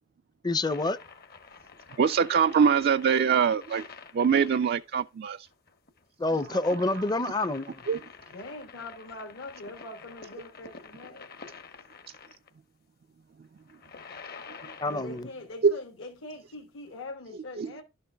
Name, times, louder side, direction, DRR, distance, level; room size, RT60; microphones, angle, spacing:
voice 1, 0.4-1.0 6.2-7.8 14.8-15.3, left 2 dB, 20° left, 0.6 m, -28 dB
sound 1, 0.7-12.5 13.6-15.4 17.0-17.1, left 5 dB, 50° left, 1.0 m, -48 dB
voice 2, 2.0-3.9 4.1-5.5 7.9-8.0 15.6-15.7 17.6-17.7, right 6 dB, 50° right, 0.3 m, -23 dB
voice 3, 8.3-11.3 14.8-17.8, left 2 dB, 70° left, 1.4 m, -42 dB
12.0 x 6.8 x 2.3 m
head